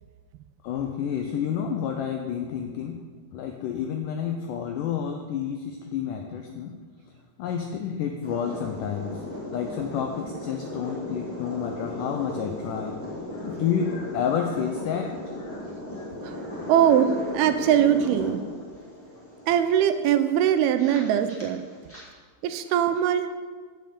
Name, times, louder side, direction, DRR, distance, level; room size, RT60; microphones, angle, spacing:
voice 1, 0.6-3.0 3.3-6.8 7.4-9.2 9.5-13.0 13.3-15.7 16.0-16.1 16.4-16.7, left 8 dB, 85° left, 3 dB, 1.8 m, -30 dB
sound 1, 8.2-22.0, left 1 dB, 5° left, 1.2 m, -36 dB
voice 2, 16.7-18.4 19.5-21.6 22.4-23.3, right 9 dB, 80° right, 9 dB, 2.5 m, -21 dB
8.3 x 6.5 x 8.3 m, 1.5 s
omnidirectional pair, 4.5 m